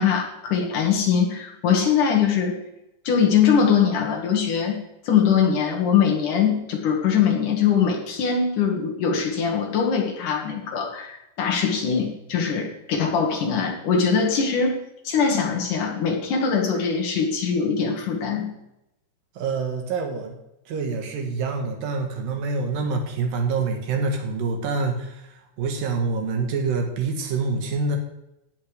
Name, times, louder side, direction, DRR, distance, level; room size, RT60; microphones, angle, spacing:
voice 1, 0.0-2.6 3.0-4.8 5.1-14.7 15.0-18.5, left 6 dB, 55° left, 1 dB, 2.7 m, -22 dB
voice 2, 19.4-20.4 20.7-25.2 25.6-28.0, right 4 dB, 60° right, 3 dB, 2.9 m, -26 dB
17.0 x 7.3 x 5.0 m, 0.87 s
omnidirectional pair, 5.3 m